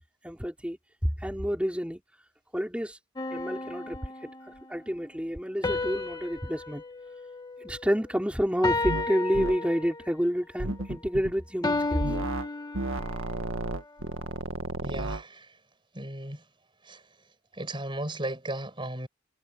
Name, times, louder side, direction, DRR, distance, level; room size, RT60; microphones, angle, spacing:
voice 1, 0.2-0.8 1.2-2.0 2.5-3.0 3.3-4.3 4.7-6.8 7.6-12.0, equal, 5° right, 4.6 m, -29 dB
sound 1, 3.2-4.6 5.6-8.1 8.6-10.2 11.6-13.3, left 3 dB, 15° left, 1.4 m, -33 dB
sound 2, 8.8-9.1 9.3-9.6 10.6-11.3 12.0-12.5 12.7-15.2, right 2 dB, 65° right, 1.7 m, -32 dB
voice 2, 14.8-15.6 15.9-16.4 16.8-17.0 17.5-19.1, right 1 dB, 20° right, 6.2 m, -36 dB
head